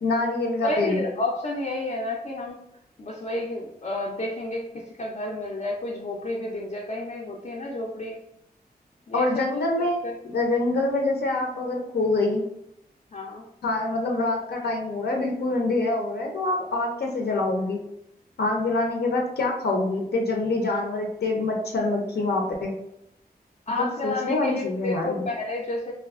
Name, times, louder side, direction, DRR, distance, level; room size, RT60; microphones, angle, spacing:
voice 1, 0.0-1.0 9.1-12.4 13.6-17.8 18.4-22.7 24.0-25.2, left 2 dB, 90° left, 1 dB, 0.6 m, -25 dB
voice 2, 0.6-2.6 3.0-4.7 5.0-8.2 9.1-9.3 9.8-9.9 13.1-13.4 23.7-25.9, left 2 dB, 45° left, -3 dB, 0.4 m, -30 dB
2.7 x 2.3 x 3.5 m, 0.79 s
wide cardioid pair, 145°, 16 cm